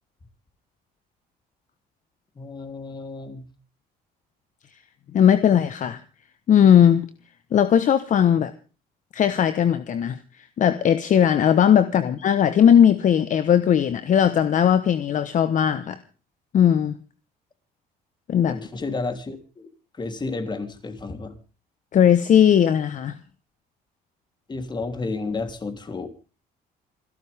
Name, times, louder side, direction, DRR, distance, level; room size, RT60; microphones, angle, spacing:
voice 1, 2.3-3.5 11.9-12.0 18.5-19.7 20.0-21.3 24.5-26.1, left 3 dB, 25° left, 3.4 m, -31 dB
voice 2, 5.1-6.0 6.5-7.0 7.5-8.5 9.1-10.2 10.6-16.0 16.5-16.9 18.3-18.5 21.9-23.2, left 9 dB, 50° left, 1.2 m, -18 dB
27.5 x 12.5 x 3.6 m
cardioid pair, 110°, 17 cm